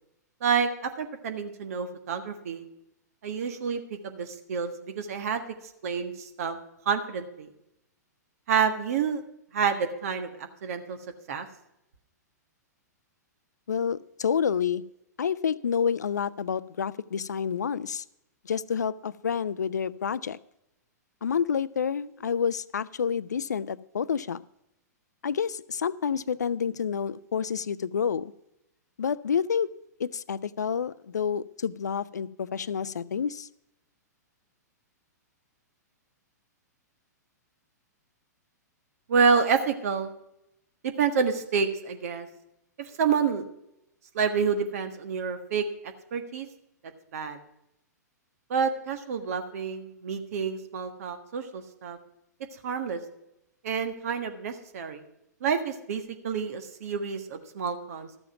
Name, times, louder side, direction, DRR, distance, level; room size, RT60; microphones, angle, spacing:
voice 1, 0.4-2.6 3.2-5.4 5.8-6.5 6.8-7.5 8.5-9.2 9.5-11.0 11.3-11.5 39.1-40.1 41.0-42.3 43.0-43.4 44.1-45.6 46.1-46.5 47.1-47.4 48.5-52.0 52.6-53.0 53.6-55.0 55.4-58.1, right 6 dB, 55° right, 7 dB, 1.5 m, -28 dB
voice 2, 13.7-14.8 15.2-18.0 18.4-20.4 21.2-24.4 25.2-28.3 29.0-29.7 30.0-33.5, left 7 dB, 70° left, 18 dB, 0.5 m, -29 dB
13.0 x 7.1 x 5.9 m, 0.83 s
figure-of-eight pair, 110°, 10 cm